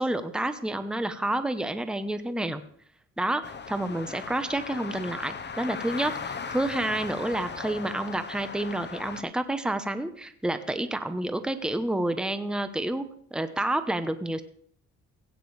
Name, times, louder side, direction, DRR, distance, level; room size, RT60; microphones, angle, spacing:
voice 1, 0.0-2.6 3.2-3.4 3.7-13.1 13.3-14.4, right 1 dB, 5° right, 10 dB, 0.9 m, -29 dB
sound 1, 3.4-9.2, left 5 dB, 35° left, 1.0 m, -38 dB
16.0 x 9.2 x 3.3 m, 0.63 s
cardioid pair, 90°, 30 cm